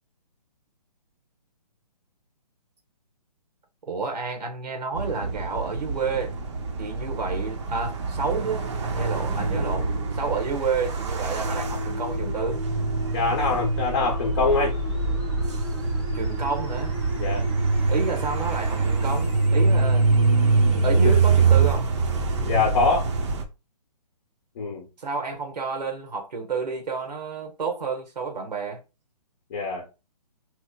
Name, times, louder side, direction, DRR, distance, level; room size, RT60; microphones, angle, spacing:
voice 1, 3.9-6.3 6.8-12.6 16.1-16.9 17.9-20.1 20.8-21.9 25.0-28.8, right 4 dB, 85° right, 1.1 m, -30 dB
sound 1, 4.9-23.4, right 4 dB, 45° right, 0.7 m, -24 dB
sound 2, 11.4-21.4, left 4 dB, 5° left, 0.5 m, -39 dB
voice 2, 13.1-14.7 17.2-17.4 21.0-21.1 22.4-23.1 24.6-24.9 29.5-29.8, left 4 dB, 35° left, 0.7 m, -24 dB
3.0 x 2.1 x 3.6 m
hypercardioid pair, 155°, 21 cm